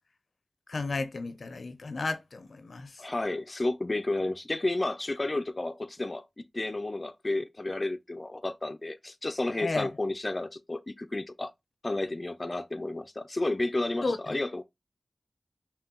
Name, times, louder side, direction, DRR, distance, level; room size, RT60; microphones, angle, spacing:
voice 1, 0.7-3.0 9.6-9.9 14.0-14.2, left 3 dB, 80° left, 0.6 m, -33 dB
voice 2, 3.0-6.3 6.5-11.5 11.8-14.6, left 2 dB, 40° left, 0.4 m, -31 dB
5.6 x 2.3 x 3.8 m
wide cardioid pair, 65°, 0 cm